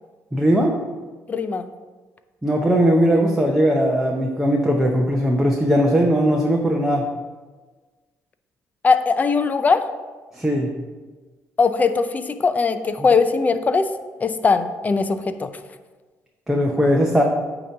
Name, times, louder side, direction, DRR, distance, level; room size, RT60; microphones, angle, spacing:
voice 1, 0.3-0.8 2.4-7.1 10.3-10.7 16.5-17.2, equal, 5° right, -1 dB, 0.7 m, -19 dB
voice 2, 1.3-1.7 8.8-9.8 11.6-13.9 14.2-15.5, left 4 dB, 25° left, 9 dB, 0.5 m, -20 dB
8.7 x 2.9 x 6.3 m, 1.3 s
cardioid pair, 120°, 6 cm